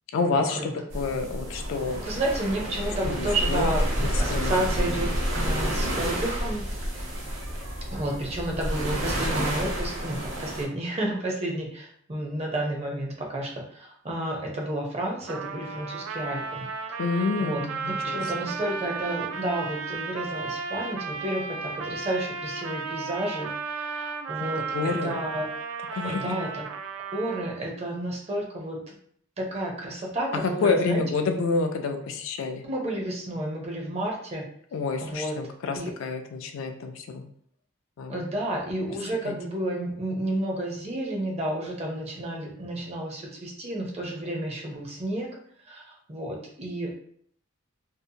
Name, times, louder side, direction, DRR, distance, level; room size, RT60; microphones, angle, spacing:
voice 1, 0.1-2.0 3.0-3.7 4.0-4.6 17.0-18.5 24.4-25.1 25.9-26.4 30.4-32.6 34.7-37.2 38.0-38.2 39.2-39.4, left 4 dB, 75° left, 5 dB, 0.4 m, -28 dB
sound 1, 0.9-10.6, equal, 65° right, 0.7 m, -29 dB
voice 2, 2.0-6.6 7.9-16.7 17.2-17.6 18.0-25.5 26.0-26.6 27.1-28.9 29.4-31.0 32.7-34.4 35.0-35.4 35.7-35.9 38.1-45.3 45.7-45.8 46.1-47.0, right 1 dB, 30° right, -1 dB, 0.5 m, -31 dB
Trumpet, 15.3-27.7, right 5 dB, 90° right, 0.3 m, -34 dB
2.7 x 2.0 x 2.7 m, 0.63 s
head